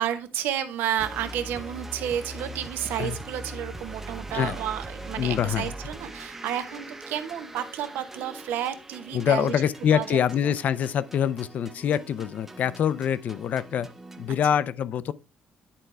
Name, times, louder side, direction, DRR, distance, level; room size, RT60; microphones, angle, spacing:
voice 1, 0.0-9.6 9.9-10.5 14.3-14.4, right 10 dB, 85° right, 1.0 m, -31 dB
sound 1, 1.0-14.4, right 1 dB, 10° right, 0.7 m, -41 dB
voice 2, 5.2-5.7 9.1-13.9 14.2-15.1, left 9 dB, 55° left, 0.5 m, -25 dB
10.0 x 4.6 x 3.3 m
cardioid pair, 140°, 3 cm